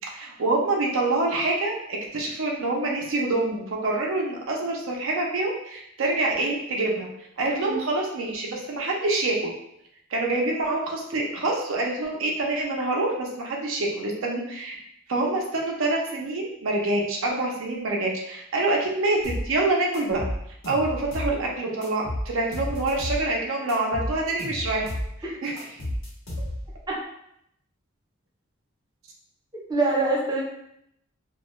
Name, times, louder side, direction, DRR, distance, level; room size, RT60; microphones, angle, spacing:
voice 1, 0.1-7.1 7.4-9.5 10.1-14.7 15.1-20.2 20.7-24.9 25.4-25.7, right 2 dB, 70° right, -1 dB, 0.5 m, -26 dB
voice 2, 7.5-7.8 26.9-27.0 29.7-30.4, right 2 dB, 20° right, -5 dB, 0.6 m, -24 dB
sound 1, 19.2-19.5 19.9-21.4 21.8-23.2 23.7-25.1 25.6-26.8, equal, 70° left, 1.0 m, -32 dB
2.3 x 2.2 x 2.9 m, 0.76 s
head